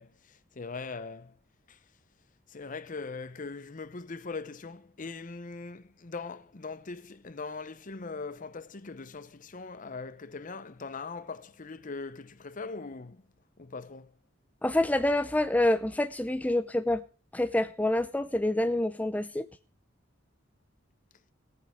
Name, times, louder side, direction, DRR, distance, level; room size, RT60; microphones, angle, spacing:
voice 1, 0.0-1.4 1.7-1.8 2.5-13.2 13.6-14.1, left 4 dB, 45° left, 0.8 m, -41 dB
voice 2, 14.6-17.0 17.3-19.5, left 1 dB, 10° left, 0.6 m, -27 dB
18.0 x 9.3 x 3.6 m
head